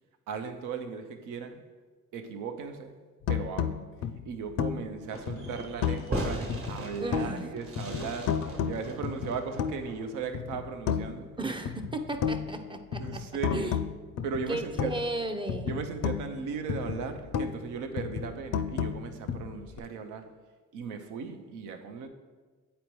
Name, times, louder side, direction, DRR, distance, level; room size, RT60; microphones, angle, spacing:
voice 1, 0.3-1.7 2.1-3.0 3.3-11.4 12.3-12.4 13.0-13.8 14.2-15.0 15.6-20.3 20.7-22.1, right 5 dB, 90° right, 0.7 m, -37 dB
sound 1, 3.2-6.2 6.5-7.5 7.8-10.0 10.3-11.3 11.7-15.2 15.5-17.7 18.0-19.8, left 8 dB, 60° left, 0.4 m, -33 dB
Fireworks, 5.1-10.4, right 1 dB, 45° right, 1.2 m, -38 dB
voice 2, 7.0-7.5 11.4-13.2 13.5-13.7 14.5-15.8, right 2 dB, 15° right, 0.5 m, -35 dB
8.7 x 4.2 x 3.1 m
cardioid pair, 90°, 30 cm